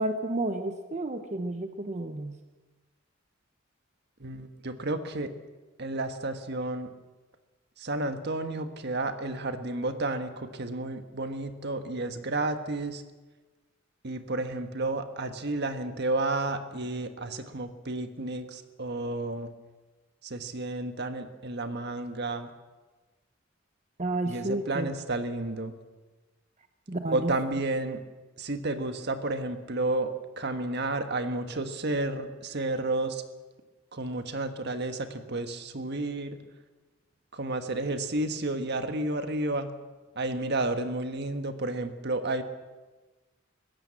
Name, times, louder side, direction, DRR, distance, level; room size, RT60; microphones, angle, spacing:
voice 1, 0.0-2.4 24.0-24.9 26.9-27.3, right 2 dB, 35° right, 6 dB, 1.0 m, -31 dB
voice 2, 4.2-5.3 5.8-6.9 7.8-13.0 14.0-19.5 20.2-22.5 24.3-25.7 27.1-28.0 28.4-33.2 33.9-36.4 37.3-39.7 40.1-42.4, right 2 dB, 60° right, 8 dB, 1.6 m, -31 dB
21.5 x 16.0 x 7.7 m, 1.2 s
head